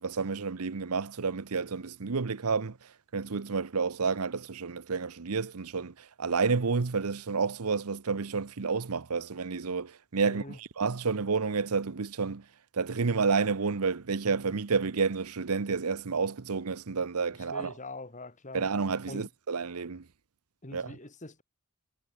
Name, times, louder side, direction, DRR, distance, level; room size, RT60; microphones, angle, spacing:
voice 1, 0.0-2.8 3.1-12.4 12.7-17.7 18.5-20.0 20.7-21.0, right 5 dB, 90° right, 0.8 m, -30 dB
voice 2, 10.2-10.6 17.3-18.7 19.1-19.3 20.6-21.4, left 2 dB, 35° left, 2.0 m, -43 dB
head